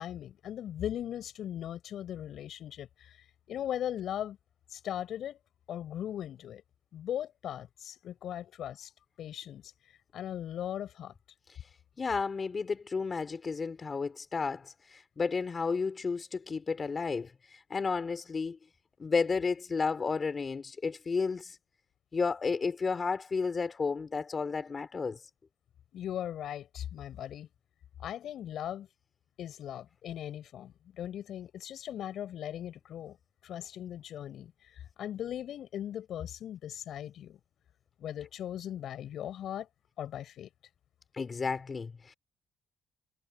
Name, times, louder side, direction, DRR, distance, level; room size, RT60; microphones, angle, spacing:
voice 1, 0.0-3.2 3.5-4.4 4.7-5.4 5.7-6.6 6.9-8.9 9.2-9.6 10.1-11.1 25.9-27.5 28.0-28.9 29.4-33.2 33.4-34.5 35.0-37.4 38.0-39.7 40.0-40.5, left 10 dB, 70° left, 7.8 m, -38 dB
voice 2, 12.0-18.6 19.0-21.6 22.1-25.2 41.1-42.1, left 4 dB, 35° left, 3.5 m, -32 dB
cardioid pair, 90°, 0 cm